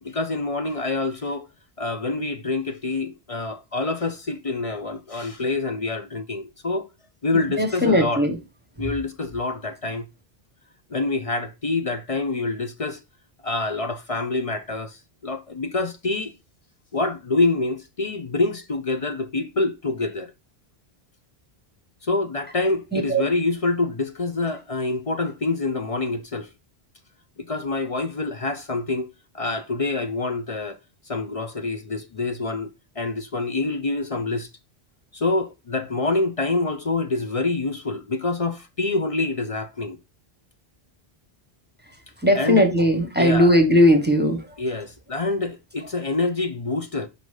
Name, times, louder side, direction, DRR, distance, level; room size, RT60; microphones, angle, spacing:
voice 1, 0.0-1.5 1.8-6.9 7.2-8.3 8.8-10.1 10.9-13.0 13.4-16.3 16.9-20.3 22.0-26.5 27.4-29.1 29.3-30.8 31.1-34.5 35.1-40.0 42.3-42.7 43.2-43.6 44.6-47.1, left 3 dB, 40° left, 0.6 m, -26 dB
voice 2, 7.6-8.3 22.9-23.2 42.2-44.4, equal, 10° right, 1.1 m, -18 dB
5.3 x 3.9 x 4.8 m
omnidirectional pair, 1.0 m